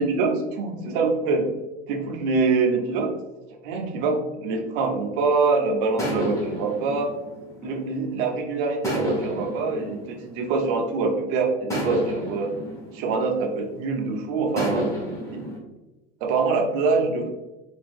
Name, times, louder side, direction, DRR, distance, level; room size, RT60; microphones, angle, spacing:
voice 1, 0.0-1.5 1.9-3.1 3.6-7.1 7.6-12.5 12.9-14.9 15.3-15.4 16.2-17.3, right 4 dB, 65° right, 3 dB, 0.8 m, -24 dB
sound 1, 6.0-8.2 8.8-11.0 11.7-14.0 14.6-15.6, equal, 10° left, 1.2 m, -31 dB
4.3 x 2.7 x 2.5 m, 1.1 s
hypercardioid pair, 95°, 31 cm